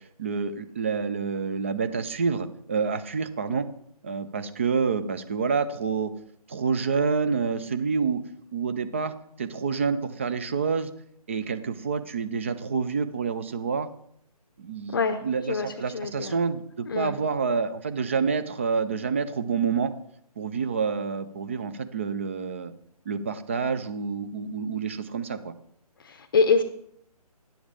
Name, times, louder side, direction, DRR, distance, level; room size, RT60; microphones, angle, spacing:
voice 1, 0.0-3.7 4.0-6.1 6.5-8.2 8.5-10.9 11.3-13.9 14.6-19.9 20.4-22.7 23.1-25.5, right 5 dB, 20° right, 10 dB, 0.4 m, -28 dB
voice 2, 14.9-16.4 16.9-17.2 26.0-26.6, left 4 dB, 35° left, 9 dB, 0.7 m, -25 dB
10.5 x 7.1 x 4.8 m, 0.70 s
figure-of-eight pair, 150°, 20 cm